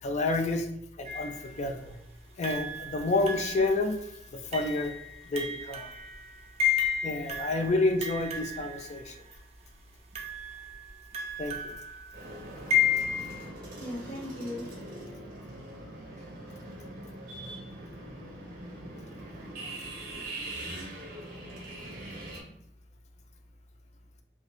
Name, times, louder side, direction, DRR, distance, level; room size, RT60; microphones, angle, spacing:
voice 1, 0.0-0.7 1.0-2.0 2.4-4.9 5.3-5.9 7.0-9.2 11.4-11.7, left 2 dB, 40° left, 5 dB, 0.4 m, -29 dB
sound 1, 1.1-1.7 2.4-9.4 10.1-13.5, left 6 dB, 35° right, 0.4 m, -33 dB
sound 2, 12.1-22.4, right 1 dB, 55° right, 0.9 m, -42 dB
voice 2, 13.6-14.7 15.4-15.8 16.2-16.8 17.3-18.7 19.1-19.4 19.8-20.2, left 1 dB, 80° left, -8 dB, 1.2 m, -44 dB
2.5 x 2.5 x 3.4 m, 0.78 s
head